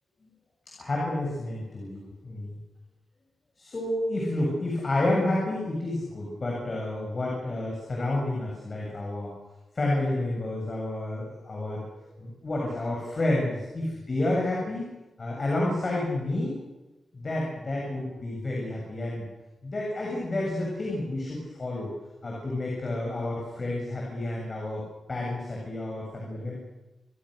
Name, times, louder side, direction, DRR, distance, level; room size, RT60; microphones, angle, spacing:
voice 1, 0.8-2.6 3.6-9.3 9.7-14.8 15.2-16.6 17.1-19.3 19.6-21.9 22.2-26.5, left 1 dB, 35° left, -2 dB, 7.7 m, -30 dB
29.5 x 22.5 x 6.7 m, 1.1 s
wide cardioid pair, 145°, 0 cm